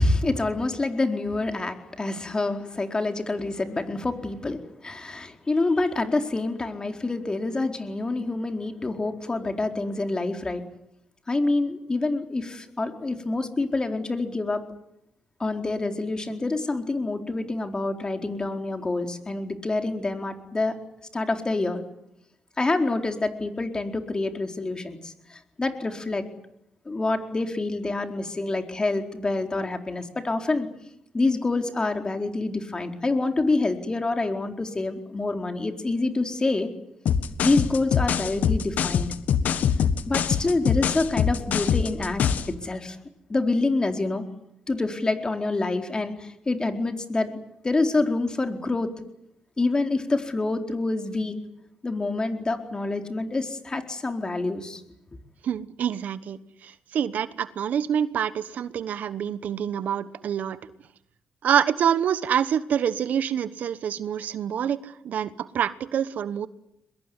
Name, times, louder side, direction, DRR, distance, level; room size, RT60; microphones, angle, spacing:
voice 1, 0.0-10.6 11.3-14.6 15.4-20.8 21.1-21.8 22.6-26.2 26.9-30.7 31.1-36.7 37.4-39.1 40.1-42.2 42.6-43.0 43.3-44.2 44.7-47.4 47.6-48.9 49.6-51.4 51.8-54.8, left 2 dB, 30° left, 5 dB, 4.4 m, -27 dB
sound 1, 37.1-42.5, left 7 dB, 75° left, 1.6 m, -23 dB
voice 2, 55.4-60.6 61.4-66.5, right 9 dB, 70° right, 15 dB, 1.1 m, -26 dB
23.5 x 22.0 x 9.8 m, 0.81 s
supercardioid pair, 60°, 3 cm